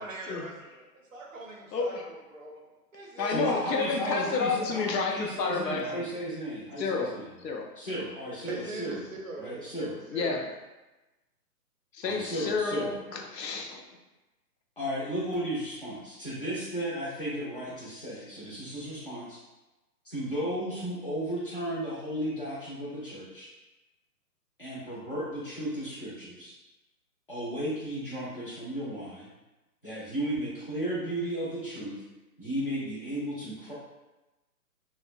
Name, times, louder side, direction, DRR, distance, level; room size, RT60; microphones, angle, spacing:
voice 1, 0.0-2.6 2.9-3.4 3.7-4.1 8.5-10.5, right 2 dB, 55° right, -1 dB, 0.5 m, -41 dB
voice 2, 1.7-2.0 3.2-6.0 6.8-7.8 10.1-10.5 11.9-13.8, left 4 dB, 80° left, 2 dB, 0.6 m, -30 dB
voice 3, 3.3-7.2 7.8-9.0 9.4-9.9 12.0-12.9 14.8-19.4 20.0-23.5 24.6-26.6 27.3-29.3 29.8-32.0 32.4-33.7, equal, 35° left, -8 dB, 0.6 m, -34 dB
2.6 x 2.0 x 2.4 m, 1.1 s
hypercardioid pair, 180°, 49 cm